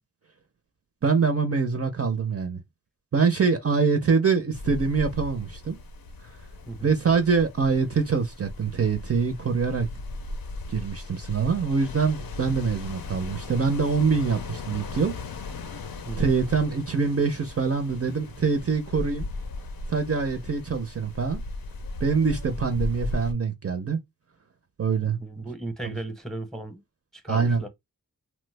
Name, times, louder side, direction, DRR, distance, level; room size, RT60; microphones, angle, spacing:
voice 1, 1.0-2.6 3.1-5.8 6.8-9.9 10.7-15.1 15.7-15.8 16.2-19.3 19.9-21.4 22.0-24.0 24.8-25.2 25.8-25.9 27.3-27.6, right 5 dB, 45° right, 0.5 m, -24 dB
sound 1, 4.5-23.3, left 2 dB, 75° left, 0.6 m, -37 dB
voice 2, 25.0-26.8 27.1-27.7, right 2 dB, ahead, 0.7 m, -36 dB
3.0 x 2.0 x 3.2 m
wide cardioid pair, 80°, 36 cm